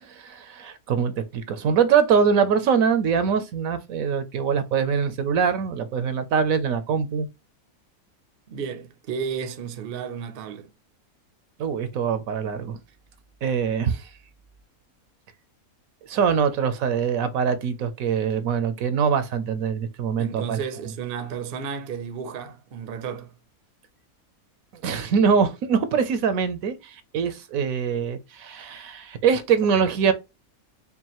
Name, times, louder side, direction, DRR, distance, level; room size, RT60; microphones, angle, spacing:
voice 1, 0.0-7.3 11.6-12.8 13.4-14.1 16.1-20.6 24.8-30.1, right 6 dB, 70° right, 1.1 m, -23 dB
voice 2, 8.5-10.7 20.2-23.3, right 7 dB, 50° right, 0.7 m, -33 dB
5.4 x 2.5 x 2.9 m
omnidirectional pair, 1.6 m